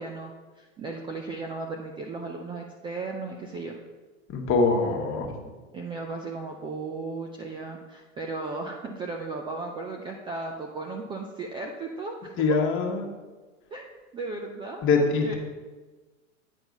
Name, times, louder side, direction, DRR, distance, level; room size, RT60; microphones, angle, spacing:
voice 1, 0.0-3.8 5.7-12.4 13.7-13.9 14.1-15.3, right 3 dB, 15° right, 1 dB, 0.4 m, -36 dB
voice 2, 4.3-5.3 12.4-13.1 14.8-15.4, left 4 dB, 30° left, 2 dB, 1.4 m, -23 dB
9.0 x 4.5 x 5.3 m, 1.3 s
hypercardioid pair, 130°, 39 cm